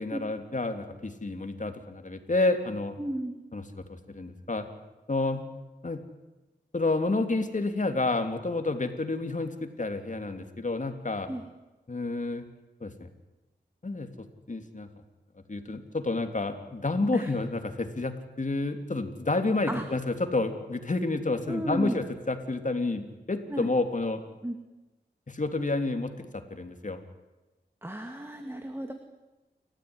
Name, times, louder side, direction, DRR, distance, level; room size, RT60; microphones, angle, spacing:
voice 1, 0.0-3.0 3.5-4.6 5.1-5.4 5.8-6.0 6.7-11.3 11.9-12.5 12.8-13.1 13.8-14.1 14.5-14.9 15.5-24.2 25.3-27.0, left 2 dB, 45° left, 7 dB, 3.0 m, -30 dB
voice 2, 3.0-3.3 11.3-11.4 17.1-17.3 19.7-19.8 21.5-22.0 23.5-23.7 24.4-24.6 27.8-28.9, right 1 dB, 15° right, 6 dB, 2.3 m, -33 dB
29.0 x 14.5 x 9.9 m, 1.1 s
cardioid pair, 50°, 18 cm